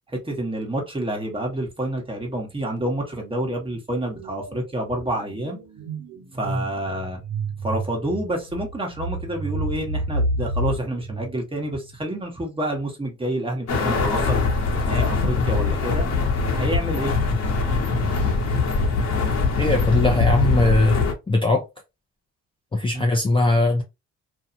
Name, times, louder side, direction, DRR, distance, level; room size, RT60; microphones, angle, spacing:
voice 1, 0.1-5.6 6.3-7.2 7.6-14.4 14.9-16.1 16.5-17.1 22.9-23.1, right 1 dB, 20° right, 1.2 m, -28 dB
sound 1, 2.8-3.1 3.4-12.1, right 1 dB, 75° right, 1.2 m, -31 dB
sound 2, 13.7-21.1, left 4 dB, 60° left, 1.2 m, -22 dB
voice 2, 19.6-21.0 21.3-21.6 22.7-23.8, left 2 dB, 15° left, 0.6 m, -20 dB
2.7 x 2.3 x 2.6 m
cardioid pair, 90°, 30 cm